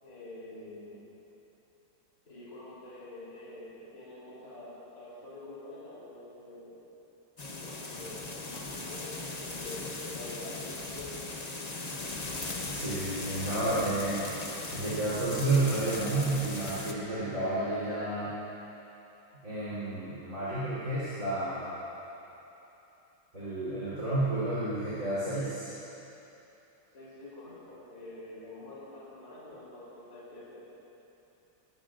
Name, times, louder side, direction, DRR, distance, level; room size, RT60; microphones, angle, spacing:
voice 1, 0.0-1.0 2.2-6.7 7.5-11.2 26.9-30.6, left 2 dB, 45° left, -9 dB, 4.0 m, -46 dB
sound 1, 7.4-16.9, left 2 dB, 30° left, 0.8 m, -38 dB
voice 2, 12.7-14.2 14.7-18.3 19.4-21.8 23.3-25.7, right 2 dB, 45° right, -12 dB, 4.2 m, -31 dB
21.5 x 19.0 x 2.5 m, 3.0 s
omnidirectional pair, 2.0 m